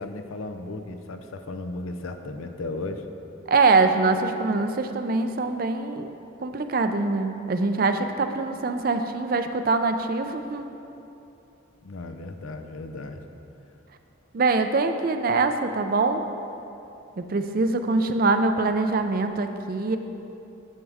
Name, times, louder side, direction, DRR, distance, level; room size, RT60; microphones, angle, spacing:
voice 1, 0.0-3.0 11.8-13.2, left 2 dB, 90° left, 7 dB, 0.6 m, -35 dB
voice 2, 3.5-6.1 6.4-10.7 14.3-16.2 17.2-20.0, right 3 dB, 45° right, 7 dB, 0.4 m, -23 dB
9.4 x 7.4 x 3.5 m, 2.9 s
head